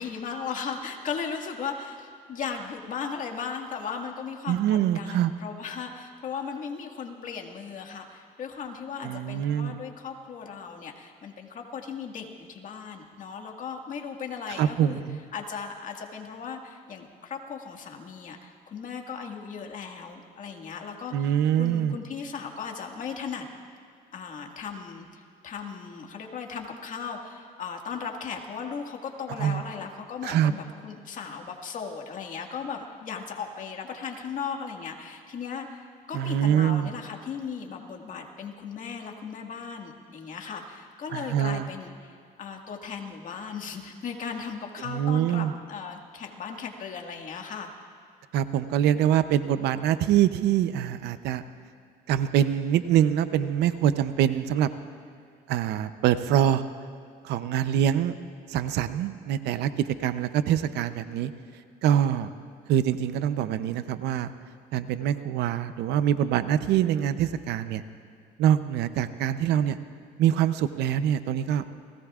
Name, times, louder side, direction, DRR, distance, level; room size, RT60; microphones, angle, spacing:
voice 1, 0.0-15.0 15.3-23.5 24.1-47.7, left 6 dB, 50° left, 2 dB, 1.9 m, -37 dB
voice 2, 4.5-5.3 9.0-9.8 14.6-15.2 21.1-22.0 29.4-29.6 30.2-30.5 36.1-37.0 41.1-41.7 44.9-45.5 48.3-51.4 52.1-54.7 55.5-56.6 57.2-58.1 58.5-61.3 61.8-62.3 62.7-64.3 64.7-67.8 68.4-69.8 70.2-71.6, right 10 dB, 80° right, 12 dB, 0.7 m, -24 dB
29.5 x 18.0 x 2.5 m, 2.3 s
cardioid pair, 110°, 17 cm